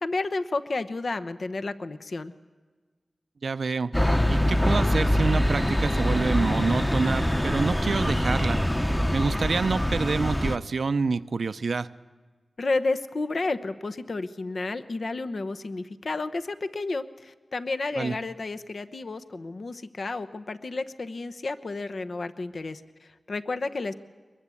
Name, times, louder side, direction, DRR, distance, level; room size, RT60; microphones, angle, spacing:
voice 1, 0.0-2.3 12.6-23.9, left 3 dB, 65° left, 9 dB, 1.0 m, -31 dB
voice 2, 3.4-3.9 4.2-8.6 9.1-11.9 18.0-18.1, right 4 dB, 80° right, 13 dB, 0.7 m, -27 dB
sound 1, 3.9-10.6, equal, 10° left, 0.9 m, -24 dB
23.5 x 21.0 x 8.5 m, 1.4 s
wide cardioid pair, 65°, 0 cm